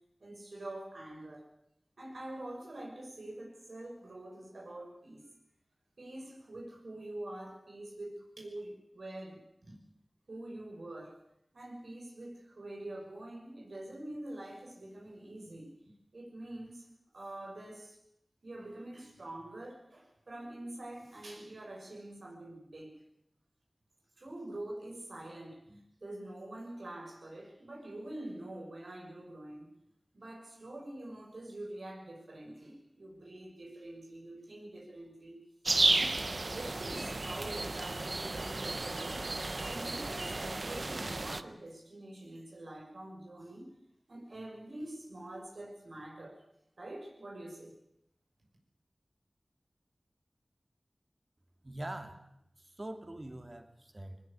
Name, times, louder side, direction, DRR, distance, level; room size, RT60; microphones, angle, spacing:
voice 1, 0.2-1.5 2.0-5.3 6.0-9.8 10.3-11.2 11.5-16.9 17.1-18.0 18.4-23.0 24.2-29.7 30.1-35.4 35.9-36.3 36.5-39.3 39.6-43.7 44.1-46.4 46.8-47.8, right 1 dB, 90° right, -1 dB, 6.3 m, -45 dB
sound 1, 35.7-41.4, right 2 dB, 60° right, 1.1 m, -33 dB
voice 2, 51.6-52.3 52.6-54.2, right 1 dB, 35° right, 6 dB, 2.8 m, -43 dB
20.5 x 20.0 x 8.7 m, 0.77 s
wide cardioid pair, 60°, 0 cm